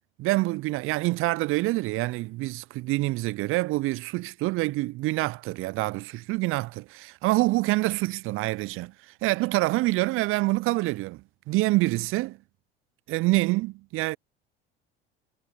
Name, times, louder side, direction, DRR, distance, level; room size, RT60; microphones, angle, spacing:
voice 1, 0.2-8.9 9.2-12.4 13.1-14.2, right 20 dB, 45° right, 0.5 m, -26 dB
hypercardioid pair, 70°, 30 cm